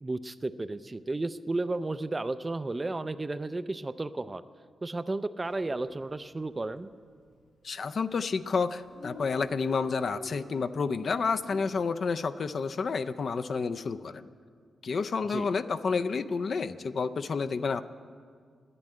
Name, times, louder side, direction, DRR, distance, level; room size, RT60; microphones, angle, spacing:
voice 1, 0.0-4.4 4.8-6.9 15.3-15.5, right 2 dB, 20° right, 13 dB, 0.4 m, -33 dB
Dog, 5.5-5.7 6.0-6.1 6.3-7.0 7.7-7.9 8.2-8.3 8.5-8.6 8.7-11.7, left 3 dB, 85° left, 1.3 m, -45 dB
voice 2, 7.6-14.3 14.8-17.8, left 5 dB, 50° left, 11 dB, 0.4 m, -30 dB
11.0 x 8.8 x 9.4 m, 2.1 s
wide cardioid pair, 115°, 0 cm